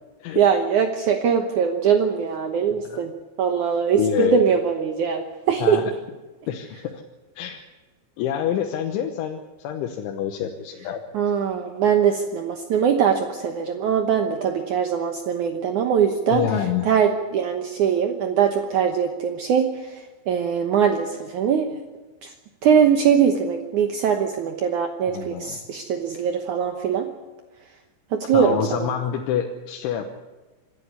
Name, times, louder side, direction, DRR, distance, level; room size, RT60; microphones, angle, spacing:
voice 1, 0.3-3.1 3.4-5.8 11.1-16.5 16.8-19.9 20.3-21.8 22.2-22.3 22.6-27.1 28.1-28.9, right 7 dB, 85° right, 5 dB, 1.7 m, -21 dB
voice 2, 4.0-4.4 5.6-5.8 6.5-7.0 7.4-7.6 8.2-11.0 16.3-16.9 25.1-25.6 28.3-30.1, left 9 dB, 90° left, 3 dB, 3.5 m, -26 dB
26.5 x 11.5 x 9.6 m, 1.2 s
omnidirectional pair, 5.3 m